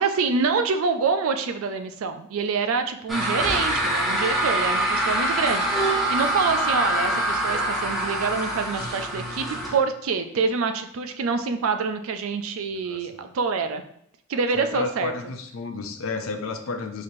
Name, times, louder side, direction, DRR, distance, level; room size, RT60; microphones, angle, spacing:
voice 1, 0.0-13.8 14.3-15.1, right 5 dB, 85° right, 8 dB, 0.4 m, -26 dB
sound 1, 3.1-9.8, right 1 dB, ahead, 0.8 m, -25 dB
voice 2, 12.9-13.3 14.5-17.0, left 3 dB, 80° left, 6 dB, 0.5 m, -32 dB
4.1 x 3.1 x 2.6 m, 0.71 s
head